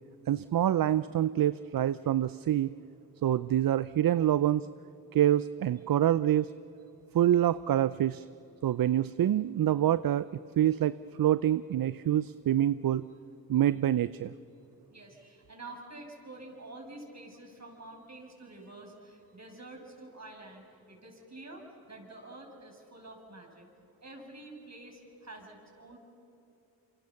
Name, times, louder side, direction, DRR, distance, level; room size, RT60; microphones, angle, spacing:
voice 1, 0.3-2.7 3.2-4.7 5.1-6.5 7.1-8.3 8.6-10.3 10.6-13.0 13.5-14.3, right 11 dB, 55° right, 16 dB, 0.6 m, -26 dB
voice 2, 14.9-23.7 24.0-26.0, right 2 dB, 40° right, 2 dB, 6.5 m, -48 dB
27.0 x 24.5 x 7.1 m, 2.9 s
supercardioid pair, 45°, 41 cm